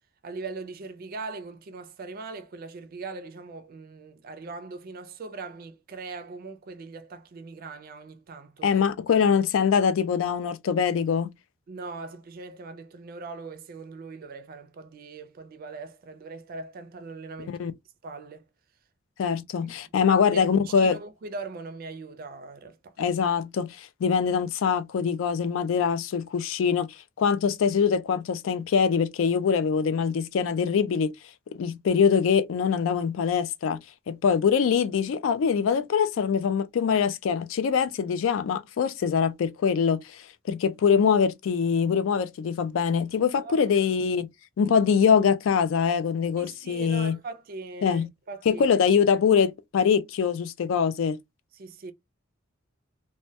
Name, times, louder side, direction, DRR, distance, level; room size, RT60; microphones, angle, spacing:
voice 1, 0.2-8.8 11.7-17.6 18.0-18.5 19.6-19.7 20.1-20.2 20.6-22.9 43.3-43.8 46.4-48.6 49.1-49.2 51.5-51.9, right 3 dB, 50° right, 0.4 m, -40 dB
voice 2, 8.6-11.3 17.6-17.7 19.2-21.0 23.0-26.9 27.2-31.1 31.5-33.8 34.1-44.3 44.6-47.2 47.8-48.1 48.5-51.2, left 6 dB, 70° left, 0.3 m, -23 dB
2.2 x 2.1 x 2.7 m
head